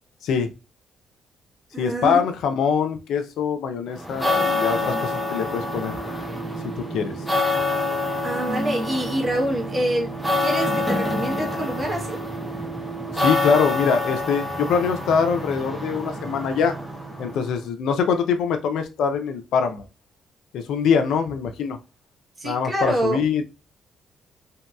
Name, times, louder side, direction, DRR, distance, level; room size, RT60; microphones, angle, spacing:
voice 1, 0.2-0.5 1.8-5.9 6.8-7.1 13.1-16.7 17.2-19.8 20.5-21.8 22.4-23.4, left 6 dB, 80° left, 7 dB, 0.4 m, -23 dB
voice 2, 1.7-2.2 8.2-10.1 10.4-12.2 22.4-23.2, right 1 dB, 25° right, 1 dB, 1.1 m, -26 dB
sound 1, 4.0-17.5, left 1 dB, ahead, 0.6 m, -27 dB
2.9 x 2.8 x 2.2 m, 0.28 s
cardioid pair, 90°, 0 cm